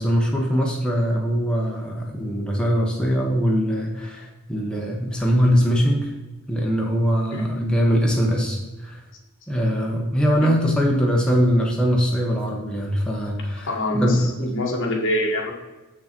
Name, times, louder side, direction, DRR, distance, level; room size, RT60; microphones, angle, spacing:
voice 1, 0.0-6.1 6.5-9.0 9.5-13.7 13.9-14.5, equal, 5° left, -2 dB, 1.0 m, -22 dB
voice 2, 7.3-7.7 10.4-10.6 13.7-15.5, left 1 dB, 55° left, 0 dB, 1.6 m, -25 dB
7.4 x 6.2 x 4.4 m, 1.1 s
head